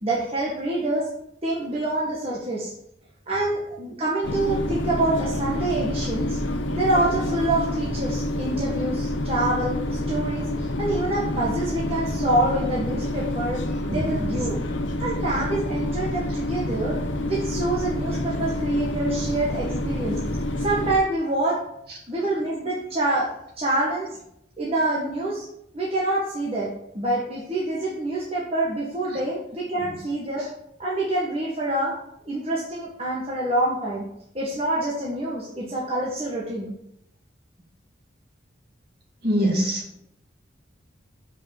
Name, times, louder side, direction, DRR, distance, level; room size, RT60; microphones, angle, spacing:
voice 1, 0.0-1.0 1.4-2.7 3.3-6.4 6.7-14.5 15.0-17.0 17.2-20.2 20.6-21.6 22.1-24.1 24.6-25.4 25.7-30.5 30.8-31.9 32.3-34.0 34.3-36.7, right 1 dB, 30° right, -5 dB, 1.5 m, -26 dB
sound 1, 4.2-21.0, left 1 dB, 85° left, 0.9 m, -28 dB
voice 2, 13.9-14.4 29.1-29.2 29.8-30.0 39.2-39.8, equal, 55° right, -2 dB, 2.9 m, -25 dB
7.4 x 5.3 x 7.4 m, 0.78 s
head